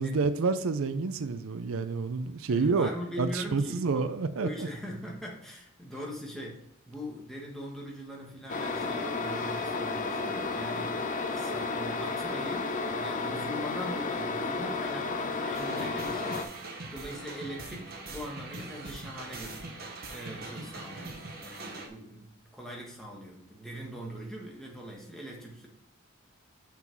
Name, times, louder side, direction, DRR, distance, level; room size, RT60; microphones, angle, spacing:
voice 1, 0.0-2.9 3.2-4.7, right 4 dB, 75° right, 11 dB, 0.5 m, -29 dB
voice 2, 2.5-4.1 4.4-11.0 11.3-19.6 20.1-25.7, equal, ahead, -2 dB, 1.5 m, -41 dB
sound 1, 8.5-16.4, left 3 dB, 35° left, 0.7 m, -32 dB
sound 2, 15.5-21.9, right 2 dB, 45° right, 1.2 m, -42 dB
6.0 x 5.7 x 4.6 m, 0.77 s
head